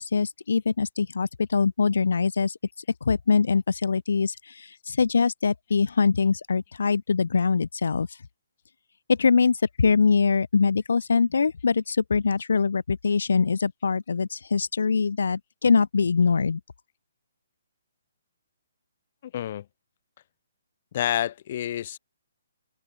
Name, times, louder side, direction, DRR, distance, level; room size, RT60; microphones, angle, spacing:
voice 1, 0.0-2.6 3.0-8.2 9.1-16.6, left 5 dB, 80° left, 1.6 m, -23 dB
voice 2, 19.2-19.6 20.9-22.0, left 11 dB, 40° left, 6.7 m, -28 dB
hypercardioid pair, 165°, 0 cm